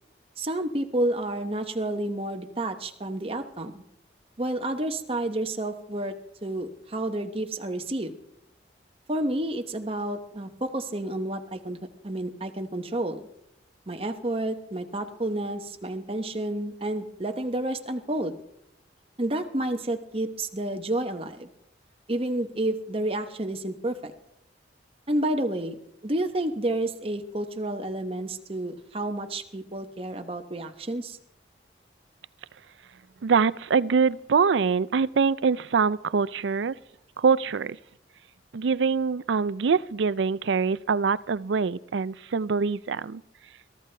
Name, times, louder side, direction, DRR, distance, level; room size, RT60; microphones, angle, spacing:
voice 1, 0.4-3.8 4.4-6.1 6.4-8.1 9.1-11.8 12.0-13.3 13.9-18.4 19.2-21.5 22.1-24.1 25.1-31.2, right 1 dB, 30° right, 6 dB, 1.0 m, -30 dB
voice 2, 33.2-36.8 37.2-37.8 38.5-43.2, right 5 dB, 80° right, 19 dB, 0.4 m, -24 dB
22.5 x 13.5 x 3.4 m, 0.78 s
head